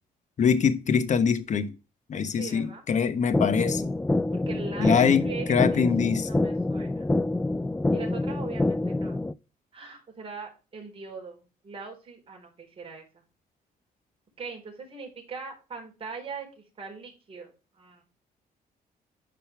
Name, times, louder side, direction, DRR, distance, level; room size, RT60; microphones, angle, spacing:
voice 1, 0.4-1.7 2.1-3.9 4.8-6.3, left 6 dB, 50° left, 1.1 m, -24 dB
voice 2, 2.4-2.9 4.3-5.0 5.2-5.8 6.2-7.0 7.9-9.2 9.7-13.2 14.4-17.5 17.8-18.0, right 5 dB, 35° right, 4.1 m, -41 dB
sound 1, 3.3-9.3, left 2 dB, 10° left, 0.3 m, -26 dB
10.5 x 5.3 x 3.4 m
cardioid pair, 110°, 16 cm